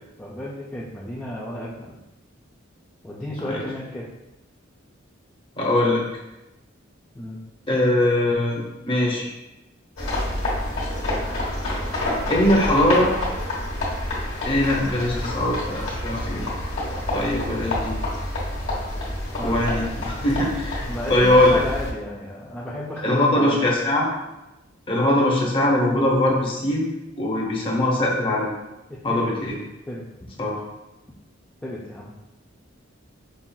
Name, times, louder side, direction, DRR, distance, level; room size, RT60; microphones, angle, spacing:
voice 1, 0.2-2.0 3.0-4.1 7.1-7.4 19.4-19.6 20.9-23.7 28.9-29.3 29.9-30.3 31.6-32.1, left 1 dB, 5° left, -7 dB, 0.3 m, -33 dB
voice 2, 5.6-6.0 7.7-9.3 12.3-13.1 14.4-16.5 17.1-18.0 19.4-21.6 23.0-24.1 24.9-26.9 27.2-28.5 29.0-29.6 30.4-30.6, left 1 dB, 25° left, -3 dB, 0.7 m, -21 dB
sound 1, 10.0-21.9, left 1 dB, 70° left, 1.3 m, -28 dB
5.4 x 2.4 x 2.2 m, 0.98 s
head